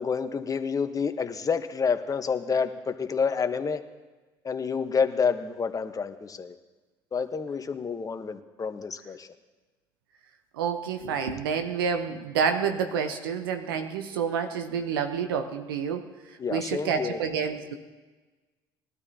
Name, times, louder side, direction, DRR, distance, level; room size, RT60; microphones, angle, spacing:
voice 1, 0.0-3.8 4.4-6.5 7.1-9.3 16.4-17.2, left 5 dB, 30° left, 8 dB, 1.1 m, -28 dB
voice 2, 10.5-16.1 16.5-17.7, right 6 dB, 85° right, 7 dB, 0.8 m, -28 dB
21.0 x 12.0 x 2.8 m, 1.3 s
hypercardioid pair, 65°, 12 cm